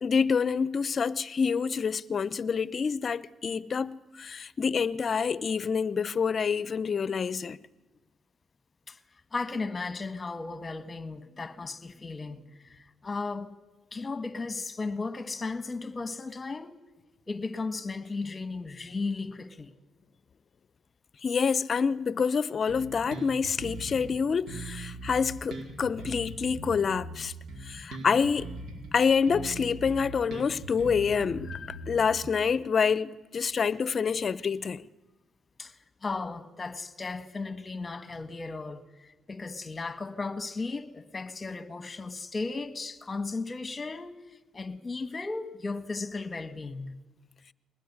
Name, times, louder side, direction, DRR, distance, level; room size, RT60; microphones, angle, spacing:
voice 1, 0.0-7.6 21.2-27.3 27.6-28.5 28.9-34.8, left 6 dB, 45° left, 0.8 m, -27 dB
voice 2, 9.3-13.5 13.9-16.7 17.3-19.7 35.6-35.7 36.0-44.2 44.5-47.0, left 3 dB, 25° left, 1.7 m, -35 dB
Bass guitar, 22.7-24.1 24.5-28.9 29.3-32.3, right 2 dB, 65° right, 4.8 m, -41 dB
21.5 x 19.5 x 9.7 m
cardioid pair, 90°, 0 cm